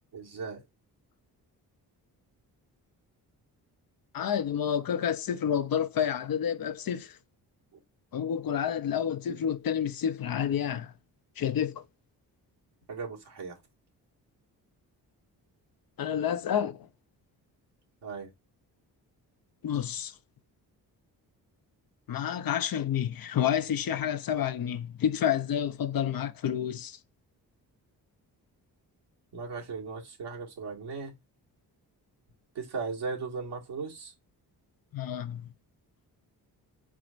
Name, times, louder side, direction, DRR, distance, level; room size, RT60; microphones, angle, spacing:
voice 1, 0.1-0.6 7.7-7.8 12.9-13.6 18.0-18.3 29.3-31.1 32.6-34.1, right 5 dB, 75° right, 2.0 m, -37 dB
voice 2, 4.1-7.2 8.1-10.9 11.4-11.8 16.0-16.9 19.6-20.1 22.1-27.0 34.9-35.5, left 9 dB, 55° left, 0.7 m, -29 dB
4.8 x 4.1 x 2.5 m
cardioid pair, 70°, 41 cm